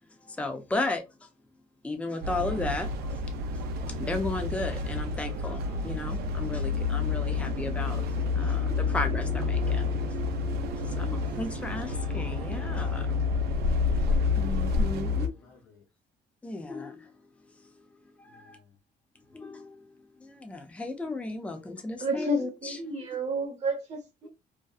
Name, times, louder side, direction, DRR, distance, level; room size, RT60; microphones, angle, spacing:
voice 1, 0.2-1.0 1.8-3.2 3.9-8.0 8.3-13.1 14.3-15.3 16.4-17.1 17.6-17.7 18.2-18.6 19.3-19.9 20.2-22.8, left 2 dB, 5° left, 0.5 m, -35 dB
sound 1, 2.2-15.3, left 4 dB, 70° right, 0.5 m, -29 dB
voice 2, 11.0-11.4 12.8-14.1 14.4-15.9 18.2-18.8, left 5 dB, 90° left, 1.0 m, -57 dB
voice 3, 22.0-24.3, right 1 dB, 40° right, 1.0 m, -31 dB
2.7 x 2.2 x 2.3 m
cardioid pair, 110°, 17 cm